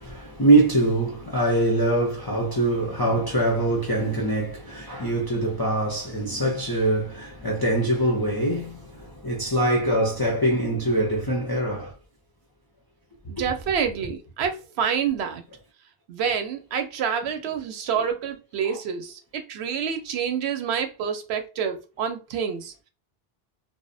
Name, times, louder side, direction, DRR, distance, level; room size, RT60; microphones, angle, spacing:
voice 1, 0.0-8.8 9.2-11.9, right 2 dB, 35° left, 0.4 m, -23 dB
voice 2, 13.3-15.4 16.1-22.9, right 7 dB, 80° right, 0.8 m, -28 dB
2.3 x 2.0 x 2.6 m
omnidirectional pair, 1.1 m